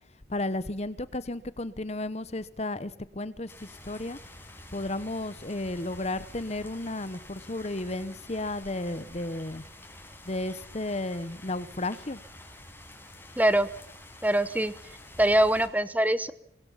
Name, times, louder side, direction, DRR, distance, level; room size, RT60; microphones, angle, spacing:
voice 1, 0.3-4.2 4.7-9.6 10.3-12.2, left 2 dB, 35° left, 15 dB, 1.0 m, -33 dB
sound 1, 3.5-15.7, left 1 dB, 10° left, 6.1 m, -48 dB
voice 2, 13.4-13.7 14.2-14.7 15.2-16.3, right 1 dB, 10° right, 14 dB, 1.1 m, -23 dB
24.5 x 22.0 x 5.7 m, 0.73 s
head